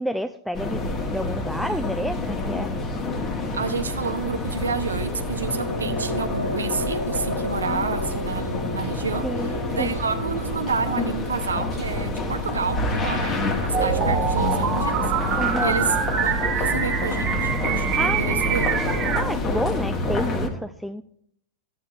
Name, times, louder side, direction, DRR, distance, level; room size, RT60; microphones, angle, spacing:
voice 1, 0.0-2.7 7.7-8.2 9.2-10.0 15.4-15.8 18.0-18.8 19.1-21.0, equal, ahead, 8 dB, 0.3 m, -30 dB
sound 1, 0.5-20.5, left 2 dB, 25° left, 1.3 m, -28 dB
voice 2, 3.5-15.0 15.3-15.9 16.2-18.7, right 5 dB, 75° right, 8 dB, 0.9 m, -29 dB
sound 2, 4.9-18.6, left 1 dB, 85° left, 1.8 m, -35 dB
sound 3, 13.7-19.2, right 7 dB, 35° right, 1.4 m, -25 dB
12.5 x 8.3 x 2.4 m, 0.71 s
figure-of-eight pair, 95°, 0 cm